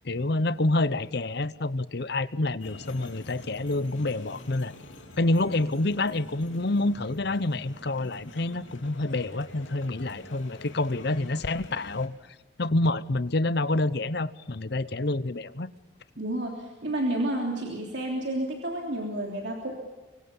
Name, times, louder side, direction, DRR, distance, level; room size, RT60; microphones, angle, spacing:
voice 1, 0.0-4.7 5.2-12.2 12.6-15.7, left 2 dB, 55° left, 15 dB, 0.8 m, -27 dB
sound 1, 2.6-12.1, left 1 dB, 90° left, 3.5 m, -46 dB
voice 2, 16.2-19.8, right 1 dB, 65° right, 0 dB, 3.3 m, -30 dB
25.0 x 24.0 x 5.5 m, 1.2 s
head